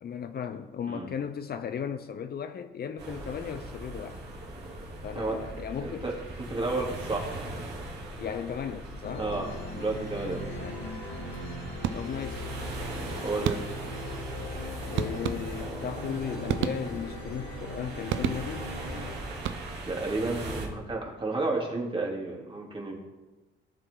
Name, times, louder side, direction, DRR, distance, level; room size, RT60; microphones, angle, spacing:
voice 1, 0.0-4.2 5.0-6.1 8.2-9.3 10.5-10.9 11.9-12.5 14.9-18.7, left 8 dB, 50° left, 9 dB, 0.7 m, -36 dB
sound 1, 3.0-20.7, right 1 dB, 55° right, 3.1 m, -40 dB
voice 2, 5.8-6.1 6.5-7.3 9.2-10.6 11.6-11.7 13.2-13.6 19.8-23.0, right 2 dB, 25° right, -2 dB, 3.2 m, -31 dB
sound 2, 9.0-19.2, left 1 dB, 80° left, 2.0 m, -40 dB
sound 3, 11.8-12.4 13.4-14.0 15.0-15.8 16.5-17.3 18.1-18.8 19.3-20.0, right 9 dB, 75° right, 0.7 m, -33 dB
18.0 x 7.4 x 4.0 m, 1.1 s
cardioid pair, 90°, 20 cm